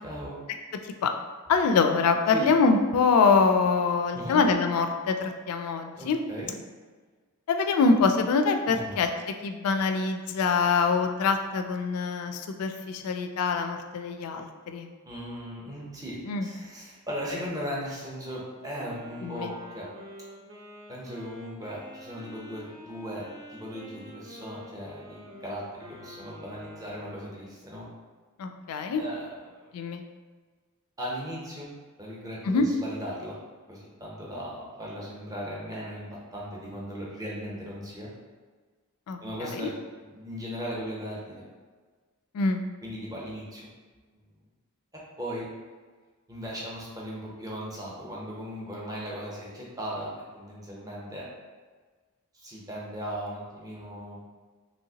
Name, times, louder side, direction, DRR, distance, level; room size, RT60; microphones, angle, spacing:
voice 1, 0.0-0.4 2.3-2.5 4.1-4.4 5.9-6.5 8.7-9.0 15.1-19.9 20.9-27.9 29.0-29.7 31.0-31.7 32.0-33.4 33.7-38.1 39.2-41.4 42.8-43.7 45.2-45.5 46.3-51.3 52.3-54.2, equal, 15° right, -5 dB, 0.6 m, -37 dB
voice 2, 1.5-6.2 7.5-9.1 9.4-14.9 16.2-16.5 19.2-19.5 28.4-29.0 29.7-30.0 32.4-32.7 39.1-39.7 42.3-42.6, left 4 dB, 75° left, 6 dB, 0.3 m, -24 dB
Wind instrument woodwind instrument, 18.7-27.3, equal, 60° right, 0.8 m, -47 dB
3.1 x 2.8 x 2.8 m, 1.4 s
head